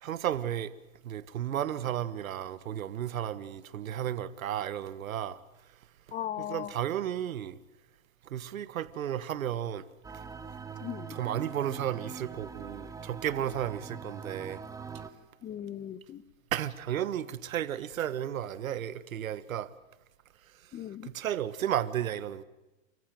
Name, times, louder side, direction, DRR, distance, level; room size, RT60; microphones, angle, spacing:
voice 1, 0.0-0.7 1.0-5.4 6.4-7.6 8.2-9.8 11.1-14.6 16.5-19.7 21.0-22.4, right 10 dB, 80° right, 1.5 m, -33 dB
voice 2, 6.1-6.7 10.8-11.2 15.4-16.2 20.7-21.1, left 11 dB, 20° left, 0.9 m, -38 dB
sound 1, 10.0-15.1, right 6 dB, 10° right, 1.1 m, -43 dB
29.0 x 14.5 x 9.2 m
hypercardioid pair, 135°, 41 cm